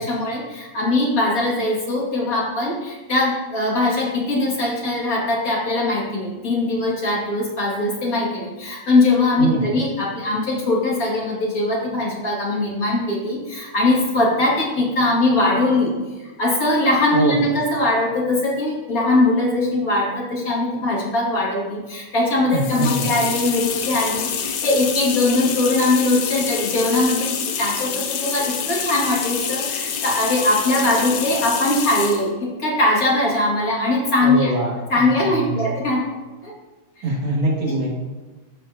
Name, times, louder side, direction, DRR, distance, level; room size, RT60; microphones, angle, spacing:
voice 1, 0.0-15.9 16.2-27.3 27.6-34.5 34.9-36.0 36.4-36.5 37.0-37.1 37.7-37.8, left 2 dB, 45° left, -4 dB, 2.2 m, -21 dB
voice 2, 9.4-9.7 17.1-17.3 22.5-23.1 34.2-35.1 35.4-35.7 37.0-38.0, right 2 dB, 65° right, -4 dB, 2.7 m, -23 dB
sound 1, 22.5-32.3, left 6 dB, 75° left, 1.6 m, -27 dB
14.0 x 4.9 x 2.6 m, 1.2 s
omnidirectional pair, 2.3 m